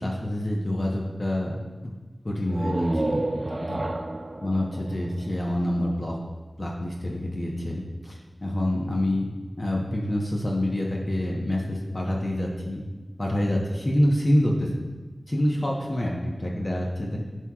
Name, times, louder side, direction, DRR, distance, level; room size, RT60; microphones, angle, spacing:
voice 1, 0.0-1.6 2.2-3.2 3.5-3.9 4.4-6.2 6.6-9.3 9.6-12.8 13.2-14.9 15.3-17.2, left 1 dB, 45° left, -2 dB, 1.0 m, -27 dB
sound 1, 2.4-6.1, right 1 dB, 45° right, 0.4 m, -30 dB
11.0 x 4.6 x 2.4 m, 1.3 s
wide cardioid pair, 50°, 0 cm